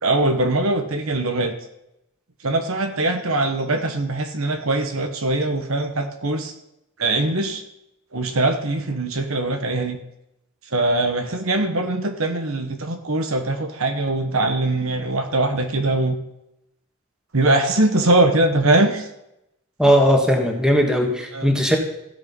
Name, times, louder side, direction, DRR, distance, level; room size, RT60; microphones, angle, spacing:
voice 1, 0.0-1.5 2.4-6.5 7.0-7.6 8.1-10.0 10.7-16.2 17.3-19.1 19.8-19.9 21.3-21.5, right 2 dB, 70° right, 6 dB, 1.3 m, -22 dB
voice 2, 19.8-21.8, equal, 5° right, 2 dB, 1.5 m, -18 dB
15.5 x 6.4 x 5.3 m, 0.83 s
head